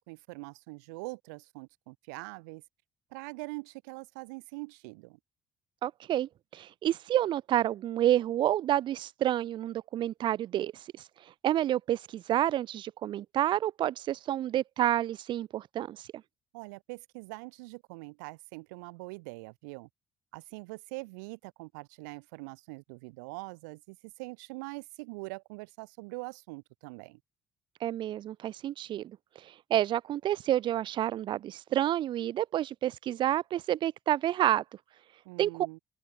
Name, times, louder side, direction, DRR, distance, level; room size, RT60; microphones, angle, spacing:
voice 1, 0.0-2.6 3.1-5.2 16.5-19.9 20.3-27.2 35.3-35.8, right 28 dB, 80° right, 2.0 m, -43 dB
voice 2, 5.8-11.1 11.4-16.2 27.8-34.6 35.4-35.5, right 12 dB, 55° right, 0.5 m, -29 dB
open air
hypercardioid pair, 55°, 10 cm